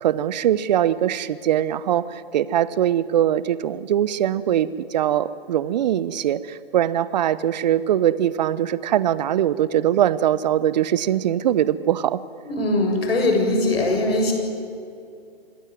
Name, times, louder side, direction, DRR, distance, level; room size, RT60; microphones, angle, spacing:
voice 1, 0.0-12.2, right 11 dB, 45° right, 17 dB, 0.9 m, -22 dB
voice 2, 12.5-14.3, left 2 dB, 70° left, 3 dB, 7.3 m, -21 dB
26.5 x 18.5 x 9.4 m, 2.4 s
figure-of-eight pair, 135°, 31 cm